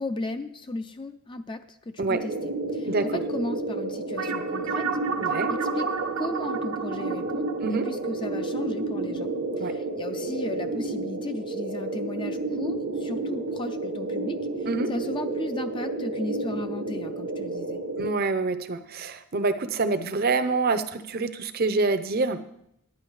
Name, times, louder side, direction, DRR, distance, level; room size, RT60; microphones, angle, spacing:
voice 1, 0.0-4.9 5.5-5.9 6.2-9.3 9.6-17.8, left 2 dB, 20° left, 8 dB, 0.4 m, -36 dB
sound 1, 2.1-18.1, right 2 dB, 70° right, 1.3 m, -31 dB
voice 2, 2.9-3.2 5.2-5.5 7.6-7.9 9.6-9.7 14.7-14.9 18.0-22.4, right 3 dB, 45° right, 10 dB, 0.7 m, -26 dB
sound 2, 4.2-9.0, right 5 dB, 85° right, 1.1 m, -32 dB
10.5 x 9.4 x 4.9 m, 0.76 s
head